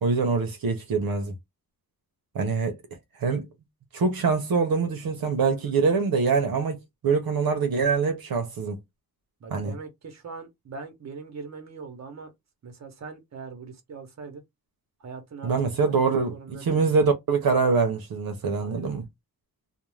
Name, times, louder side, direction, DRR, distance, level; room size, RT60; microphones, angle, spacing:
voice 1, 0.0-1.3 2.3-2.8 3.2-3.5 3.9-8.8 9.5-9.7 15.4-19.0, right 5 dB, 70° right, 0.7 m, -24 dB
voice 2, 9.4-12.3 12.6-14.4 15.0-15.5 15.8-16.9 18.6-19.0, right 5 dB, 45° right, 0.8 m, -41 dB
2.5 x 2.1 x 3.1 m
wide cardioid pair, 165°, 37 cm